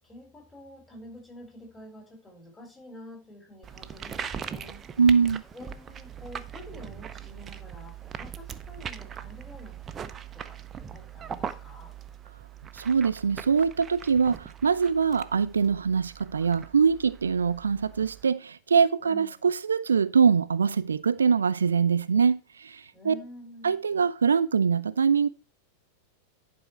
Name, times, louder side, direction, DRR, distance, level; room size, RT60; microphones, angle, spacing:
voice 1, 0.0-4.8 5.5-11.9 19.0-19.5 22.9-23.8, left 1 dB, 10° left, 4.0 m, -48 dB
sound 1, 3.6-18.2, right 8 dB, 25° right, 0.7 m, -41 dB
voice 2, 5.0-5.4 12.7-23.1 23.6-25.3, right 6 dB, 70° right, 0.4 m, -23 dB
11.0 x 5.4 x 4.6 m
figure-of-eight pair, 90°, 0 cm